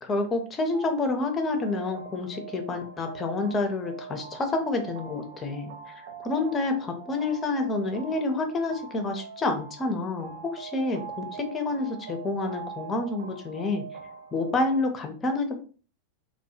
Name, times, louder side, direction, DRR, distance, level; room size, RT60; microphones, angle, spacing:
voice 1, 0.0-5.7 6.2-13.8 14.3-15.6, left 3 dB, 20° left, 5 dB, 0.5 m, -28 dB
sound 1, 0.7-14.8, right 6 dB, 55° right, 0.3 m, -42 dB
2.2 x 2.1 x 2.9 m, 0.39 s
figure-of-eight pair, 90°, 0 cm